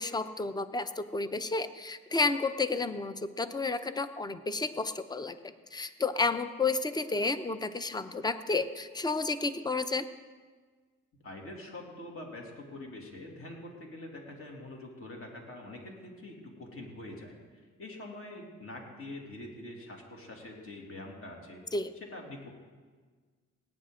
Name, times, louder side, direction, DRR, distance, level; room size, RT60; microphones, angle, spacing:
voice 1, 0.0-5.4 5.7-10.0 21.7-21.9, left 3 dB, 15° left, 12 dB, 0.6 m, -31 dB
voice 2, 11.2-21.6 22.0-22.5, left 1 dB, 45° left, 0 dB, 2.6 m, -45 dB
18.5 x 9.6 x 3.8 m, 1.5 s
cardioid pair, 90°, 30 cm